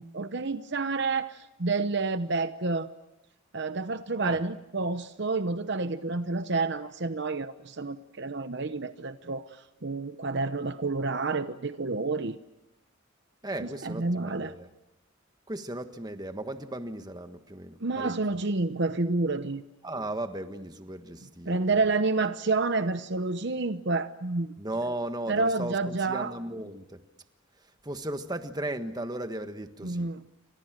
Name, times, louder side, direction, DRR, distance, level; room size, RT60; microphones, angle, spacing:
voice 1, 0.0-2.9 3.5-12.4 13.6-14.5 17.8-19.6 21.5-24.5 25.3-26.3 29.8-30.2, right 3 dB, 55° right, 11 dB, 0.9 m, -29 dB
voice 2, 13.4-14.7 15.5-18.4 19.8-21.8 24.6-27.0 27.6-30.1, right 1 dB, 20° right, 8 dB, 1.4 m, -36 dB
29.5 x 25.5 x 7.5 m, 0.93 s
head